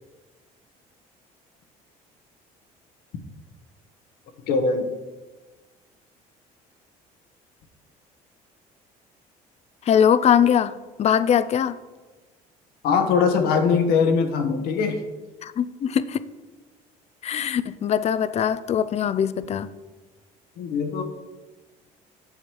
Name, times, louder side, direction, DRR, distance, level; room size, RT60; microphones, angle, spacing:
voice 1, 4.5-4.9 12.8-15.0 20.6-21.0, left 5 dB, 75° left, 1.3 m, -21 dB
voice 2, 9.9-11.8 15.4-16.2 17.2-19.7, left 8 dB, 40° left, 0.5 m, -21 dB
9.7 x 7.3 x 4.6 m
cardioid pair, 95°, 16 cm